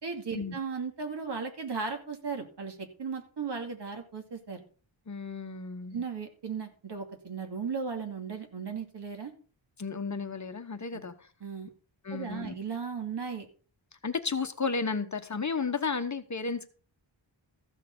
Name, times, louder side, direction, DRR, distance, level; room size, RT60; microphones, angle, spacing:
voice 1, 0.0-4.6 5.9-9.3 10.9-11.0 11.4-11.7 12.1-13.5, right 5 dB, 60° right, 4 dB, 2.6 m, -36 dB
voice 2, 5.1-6.0 9.8-11.1 12.0-12.5 14.0-16.7, left 4 dB, 40° left, 8 dB, 1.1 m, -33 dB
14.5 x 6.6 x 5.3 m, 0.40 s
wide cardioid pair, 120°, 46 cm